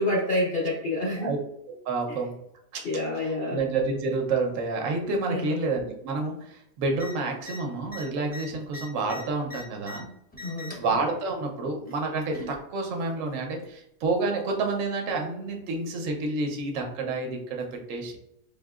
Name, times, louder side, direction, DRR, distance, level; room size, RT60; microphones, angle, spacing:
voice 1, 0.0-1.3 2.1-2.2 2.8-3.6 5.3-5.6 10.4-10.8, left 1 dB, 50° left, -4 dB, 0.7 m, -28 dB
voice 2, 1.8-2.3 2.7-2.8 3.2-10.1 10.8-18.2, right 3 dB, 60° right, 2 dB, 1.0 m, -29 dB
sound 1, 6.9-7.1 7.4-7.6 7.9-10.0 10.3-10.9 11.9-12.5 13.6-13.7, left 2 dB, 10° left, 0.6 m, -41 dB
4.8 x 2.7 x 2.4 m, 0.81 s
omnidirectional pair, 1.8 m